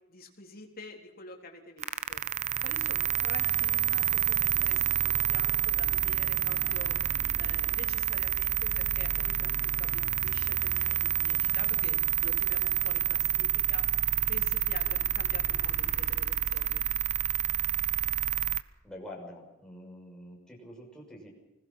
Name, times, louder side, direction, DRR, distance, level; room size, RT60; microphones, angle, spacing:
voice 1, 0.1-2.2 2.6-7.0 7.4-13.9 14.3-16.8, left 3 dB, 45° left, 2 dB, 3.8 m, -47 dB
sound 1, 1.8-18.6, right 11 dB, 35° right, 0.7 m, -28 dB
voice 2, 18.8-21.3, left 1 dB, 5° left, -2 dB, 6.4 m, -46 dB
25.5 x 19.5 x 5.7 m, 0.96 s
head